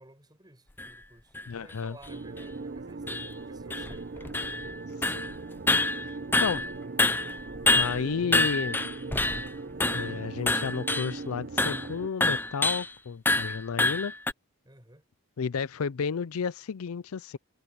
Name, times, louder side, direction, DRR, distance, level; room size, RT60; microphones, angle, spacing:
voice 1, 0.0-4.6 14.6-15.0, right 1 dB, 20° right, 6.0 m, -54 dB
sound 1, 0.8-0.9 1.3-1.5 2.0-2.1 2.4-2.5 3.1-3.3 3.7-4.8 5.0-5.3 5.7-6.7 7.0-9.5 9.8-10.2 10.5-11.2 11.6-11.9 12.2-12.9 13.3-14.3, left 2 dB, 10° left, 0.4 m, -26 dB
voice 2, 1.5-2.0 5.1-5.4 6.4-6.6 7.7-8.8 9.9-14.1 15.4-17.4, left 6 dB, 80° left, 0.5 m, -32 dB
sound 2, 2.1-12.1, right 3 dB, 45° right, 0.6 m, -40 dB
head